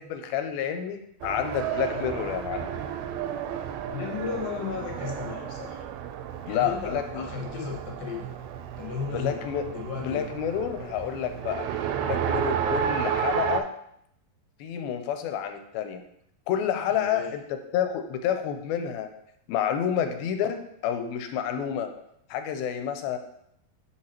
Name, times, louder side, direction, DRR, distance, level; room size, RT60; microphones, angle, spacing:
voice 1, 0.0-2.7 6.5-7.3 9.1-9.6 10.0-11.7 12.0-13.7 14.6-16.0 16.5-17.4 17.7-19.1 19.5-21.9 22.3-23.2, left 9 dB, 90° left, 7 dB, 2.5 m, -29 dB
Race car auto racing, 1.2-13.6, right 8 dB, 90° right, 2.4 m, -32 dB
voice 2, 3.9-5.8 6.5-8.3 8.8-9.4 9.7-10.3 16.9-17.3, left 5 dB, 75° left, -1 dB, 2.8 m, -35 dB
8.3 x 4.8 x 2.9 m, 0.74 s
omnidirectional pair, 4.2 m